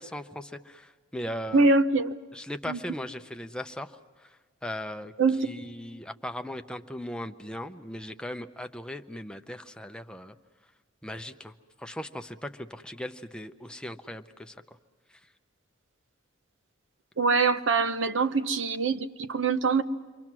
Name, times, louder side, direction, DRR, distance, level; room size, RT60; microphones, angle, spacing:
voice 1, 0.0-1.7 2.3-4.4 4.6-5.1 5.4-10.4 11.0-11.5 11.8-14.6, left 1 dB, 5° left, 0.7 m, -38 dB
voice 2, 1.5-2.1 2.7-2.8 5.2-5.5 17.2-19.8, right 4 dB, 70° right, 0.8 m, -24 dB
28.5 x 23.5 x 6.1 m
head